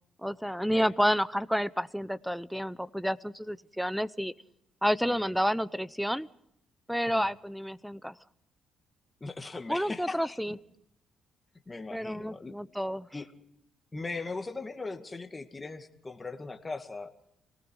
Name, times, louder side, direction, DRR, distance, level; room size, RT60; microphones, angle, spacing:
voice 1, 0.2-4.3 4.8-6.3 6.9-8.1 9.7-10.6 11.9-13.1, equal, ahead, 18 dB, 0.7 m, -30 dB
voice 2, 5.0-5.3 7.1-7.3 9.2-10.6 11.7-12.5 13.1-13.3 13.9-17.1, left 3 dB, 20° left, 6 dB, 2.1 m, -39 dB
29.0 x 19.0 x 4.8 m, 0.74 s
cardioid pair, 90°, 0 cm